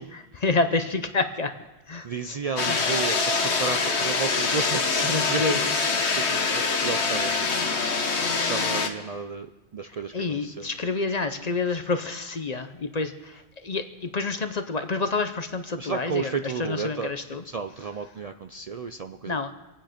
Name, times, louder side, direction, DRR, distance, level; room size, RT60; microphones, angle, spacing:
voice 1, 0.0-1.5 1.9-2.4 2.7-2.8 5.0-6.0 9.9-17.4 19.3-19.5, left 3 dB, 40° left, 9 dB, 0.8 m, -29 dB
voice 2, 2.0-5.9 6.1-7.7 8.4-9.5 9.7-10.7 15.8-17.1 17.5-19.5, right 5 dB, 50° right, 7 dB, 0.5 m, -32 dB
sound 1, 2.6-8.9, left 4 dB, 80° left, 1.4 m, -25 dB
25.5 x 8.9 x 5.1 m, 1.1 s
omnidirectional pair, 1.1 m